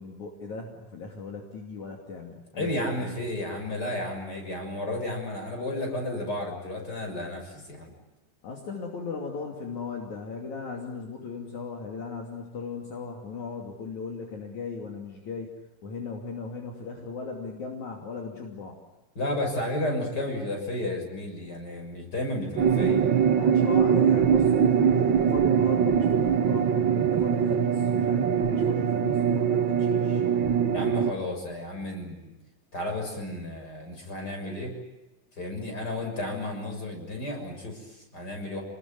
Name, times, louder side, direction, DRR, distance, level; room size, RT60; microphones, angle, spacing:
voice 1, 0.0-3.1 8.4-15.5 15.8-18.8 23.3-30.2, left 4 dB, 60° left, 1 dB, 4.1 m, -37 dB
voice 2, 2.5-7.9 19.2-23.1 30.7-32.4 32.7-34.7 35.4-38.6, left 1 dB, 30° left, 3 dB, 7.2 m, -32 dB
sound 1, 22.6-31.1, right 7 dB, 75° right, 1.1 m, -22 dB
28.5 x 21.0 x 9.5 m, 1.0 s
omnidirectional pair, 3.8 m